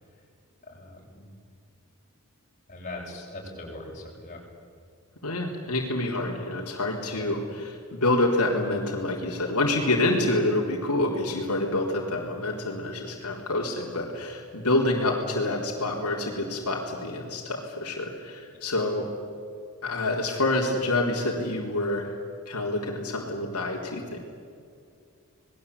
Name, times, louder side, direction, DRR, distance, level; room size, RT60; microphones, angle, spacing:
voice 1, 0.7-1.3 2.7-4.4 7.1-7.2, left 2 dB, 35° left, -2 dB, 7.4 m, -40 dB
voice 2, 5.2-19.1 19.8-22.1 22.5-24.2, left 2 dB, 85° left, -1 dB, 4.1 m, -27 dB
27.5 x 21.0 x 8.5 m, 2.4 s
head